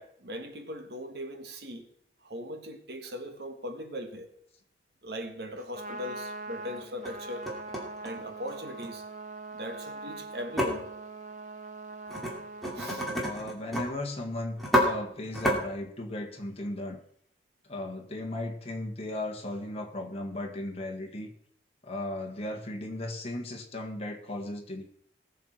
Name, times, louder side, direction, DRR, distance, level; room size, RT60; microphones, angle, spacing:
voice 1, 0.0-1.9 2.2-4.3 5.0-7.5 8.0-9.0 9.5-10.9 12.8-13.1, equal, 60° right, 1.4 m, -39 dB
sound 1, 5.4-5.5 6.0-6.1 6.8-7.1 7.4-8.9 10.6-10.7 12.1-12.3 12.6-13.8 14.2-14.3 14.6-14.8 15.3-15.6, equal, ahead, 2.5 m, -29 dB
Trumpet, 5.6-13.2, right 3 dB, 40° right, 1.1 m, -42 dB
voice 2, 13.2-17.0 17.7-21.3 21.8-24.8, left 1 dB, 35° left, 1.7 m, -36 dB
19.5 x 6.5 x 4.4 m
head